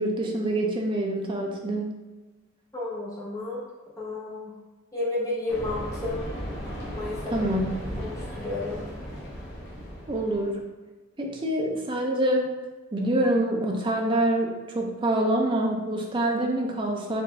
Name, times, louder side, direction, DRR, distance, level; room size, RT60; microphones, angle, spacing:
voice 1, 0.0-1.9 7.3-7.7 10.1-10.6 11.2-12.5 12.9-17.2, right 1 dB, 25° right, 0 dB, 0.4 m, -26 dB
voice 2, 2.7-3.7 4.0-4.5 4.9-6.2 6.9-7.4 8.0-8.8, left 2 dB, 15° left, -7 dB, 0.9 m, -32 dB
sound 1, 5.5-10.6, equal, 50° left, 0.8 m, -36 dB
4.3 x 2.6 x 3.2 m, 1.2 s
head